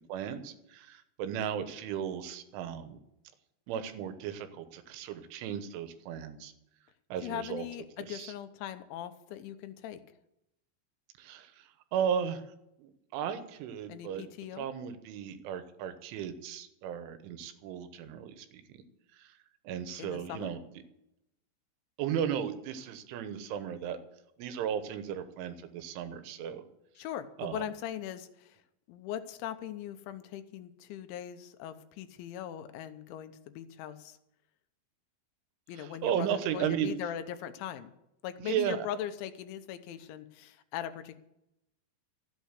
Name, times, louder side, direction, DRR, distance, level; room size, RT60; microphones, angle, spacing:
voice 1, 0.1-3.0 3.7-6.5 7.1-7.7 8.1-8.3 11.2-12.4 12.8-14.2 14.6-18.8 19.2-19.4 19.7-20.6 22.0-24.0 24.4-26.6 27.4-27.6 35.8-36.9 38.4-38.9, right 9 dB, 90° right, 9 dB, 3.6 m, -35 dB
voice 2, 7.2-10.0 13.9-14.7 20.0-20.5 27.0-28.6 28.9-34.2 35.7-37.9 38.2-41.2, left 10 dB, 80° left, 10 dB, 3.2 m, -40 dB
14.0 x 8.5 x 8.2 m, 0.83 s
omnidirectional pair, 5.4 m